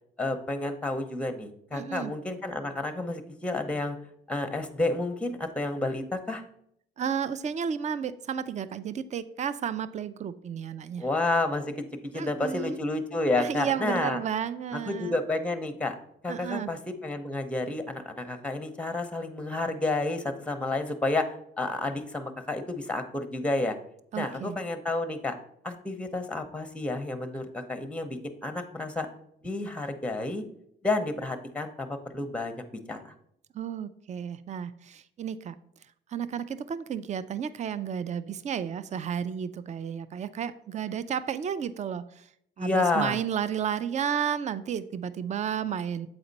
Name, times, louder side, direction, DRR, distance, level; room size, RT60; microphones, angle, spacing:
voice 1, 0.2-4.0 4.3-6.4 11.0-11.9 12.1-14.2 14.7-16.0 16.2-21.3 21.6-23.8 24.1-25.4 25.6-29.1 29.4-30.4 30.8-33.1 42.6-43.2, left 2 dB, 5° left, 8 dB, 0.7 m, -30 dB
voice 2, 1.7-2.1 7.0-11.1 12.1-12.8 13.4-15.2 16.3-16.7 24.1-24.6 33.5-35.5 36.1-42.3 42.6-46.1, right 8 dB, 35° right, 14 dB, 0.4 m, -32 dB
7.9 x 4.1 x 4.0 m, 0.72 s
cardioid pair, 90°, 20 cm